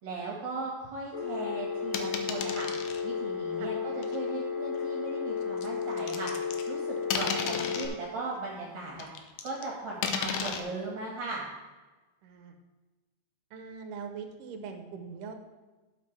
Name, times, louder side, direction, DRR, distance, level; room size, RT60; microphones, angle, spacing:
voice 1, 0.0-2.7 3.0-11.4, right 3 dB, 60° right, -3 dB, 2.8 m, -38 dB
Telephone, 1.1-7.9, left 6 dB, 20° left, 2.4 m, -33 dB
sound 1, 1.9-3.0 4.0-4.2 5.6-6.7 7.1-7.9 9.0-9.6 10.0-10.6, left 6 dB, 80° left, 2.3 m, -33 dB
voice 2, 12.2-12.6 13.5-15.3, right 5 dB, 80° right, 5 dB, 2.5 m, -41 dB
11.0 x 8.6 x 3.4 m, 1.2 s
omnidirectional pair, 3.8 m